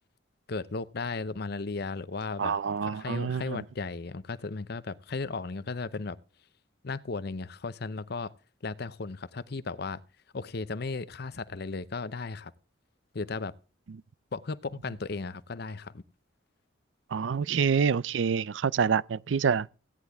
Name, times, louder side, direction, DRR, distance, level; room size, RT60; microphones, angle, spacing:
voice 1, 0.5-2.5 2.8-6.2 6.8-8.3 8.6-10.0 10.3-12.5 13.1-13.5 14.3-16.0, left 3 dB, 60° left, 0.7 m, -35 dB
voice 2, 2.4-3.6 13.9-14.0 17.1-19.7, right 6 dB, 90° right, 0.5 m, -27 dB
16.0 x 9.8 x 3.5 m
head